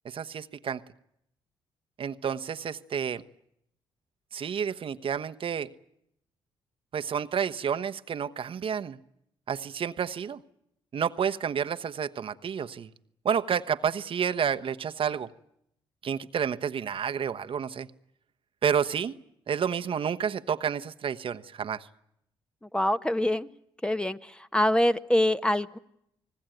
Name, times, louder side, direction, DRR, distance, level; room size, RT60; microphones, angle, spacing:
voice 1, 0.0-0.8 2.0-3.2 4.3-5.7 6.9-9.0 9.5-10.4 10.9-12.9 13.2-15.3 16.0-17.9 18.6-19.1 19.5-21.9, right 7 dB, 55° right, 9 dB, 1.1 m, -30 dB
voice 2, 22.7-23.5 23.8-25.8, left 1 dB, 10° left, 11 dB, 1.2 m, -25 dB
29.5 x 19.5 x 9.2 m, 0.77 s
supercardioid pair, 60°, 11 cm